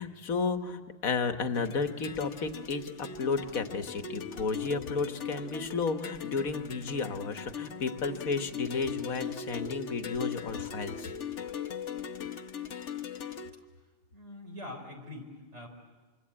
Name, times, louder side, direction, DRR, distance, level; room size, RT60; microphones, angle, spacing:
voice 1, 0.0-11.1, left 4 dB, 85° left, 7 dB, 1.8 m, -32 dB
sound 1, 1.5-13.5, left 7 dB, 60° left, 1.3 m, -40 dB
voice 2, 14.1-15.7, left 1 dB, 55° right, 3 dB, 4.4 m, -44 dB
25.5 x 25.5 x 8.7 m, 1.3 s
omnidirectional pair, 1.4 m